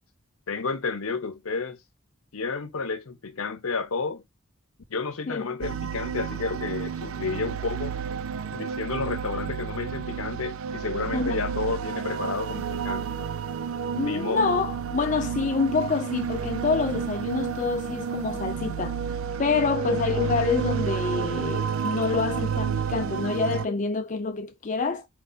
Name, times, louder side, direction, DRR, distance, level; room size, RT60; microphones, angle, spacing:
voice 1, 0.5-1.8 2.3-4.2 4.9-8.0 8.5-13.3 14.0-14.5, left 4 dB, 90° left, 0.8 m, -31 dB
voice 2, 5.3-5.6 11.1-11.4 13.9-19.0 19.4-25.1, left 4 dB, 35° left, 0.4 m, -27 dB
sound 1, 5.6-23.7, right 7 dB, 80° right, 0.4 m, -30 dB
4.6 x 2.6 x 4.0 m
head